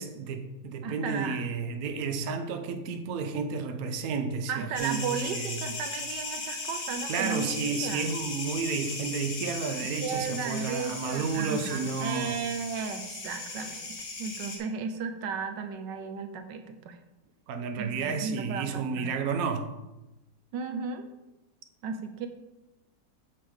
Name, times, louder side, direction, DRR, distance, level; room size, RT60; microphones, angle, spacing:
voice 1, 0.0-5.7 7.1-12.4 17.5-19.7, right 5 dB, 60° right, 1.1 m, -32 dB
voice 2, 0.8-1.4 4.5-8.1 10.0-17.0 17.8-19.1 20.5-21.1 21.8-22.3, right 6 dB, 80° right, 1.3 m, -35 dB
sound 1, 4.8-14.6, left 3 dB, 85° left, 2.3 m, -37 dB
8.2 x 6.6 x 3.6 m
omnidirectional pair, 1.9 m